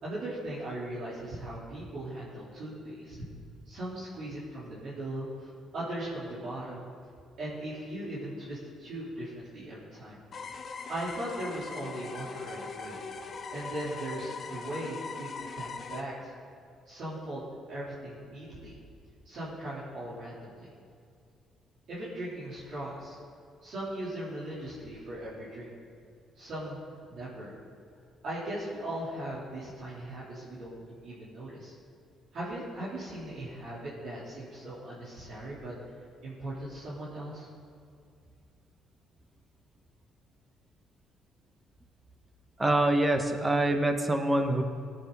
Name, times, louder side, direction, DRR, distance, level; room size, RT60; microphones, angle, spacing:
voice 1, 0.0-3.2 3.7-6.9 7.4-10.2 10.9-13.0 13.5-16.3 16.9-18.7 19.2-20.7 21.9-23.2 23.6-25.7 26.3-27.5 28.2-31.7 32.3-35.7 36.2-37.5, right 1 dB, 65° right, -10 dB, 3.8 m, -39 dB
sound 1, 10.3-16.0, left 4 dB, 50° left, 1.2 m, -40 dB
voice 2, 42.6-44.6, right 1 dB, 20° right, 5 dB, 1.3 m, -25 dB
17.5 x 9.7 x 4.2 m, 2.3 s
cardioid pair, 85°, 0 cm